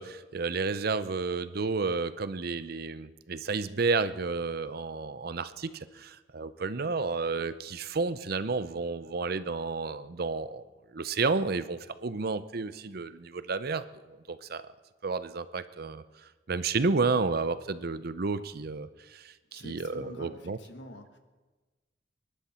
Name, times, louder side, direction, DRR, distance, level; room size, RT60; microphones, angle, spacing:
voice 1, 0.0-10.6 10.9-14.6 15.0-16.0 16.5-20.6, right 4 dB, 55° right, 14 dB, 0.6 m, -31 dB
voice 2, 19.5-21.2, left 1 dB, 75° left, 7 dB, 1.5 m, -46 dB
24.5 x 11.5 x 4.3 m, 1.2 s
head